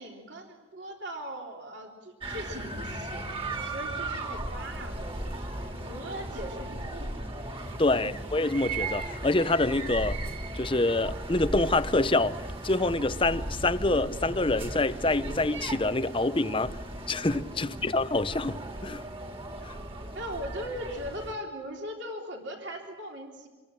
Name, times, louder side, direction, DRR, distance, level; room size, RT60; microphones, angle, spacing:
voice 1, 0.0-7.1 7.9-8.2 17.6-17.7 20.1-23.5, equal, 60° right, 3.5 m, -40 dB
sound 1, 2.2-21.3, right 2 dB, 25° right, 2.7 m, -37 dB
voice 2, 7.8-10.2 10.5-16.8 17.1-19.0 19.6-19.8, left 2 dB, 25° left, 0.7 m, -26 dB
26.5 x 21.5 x 9.0 m
head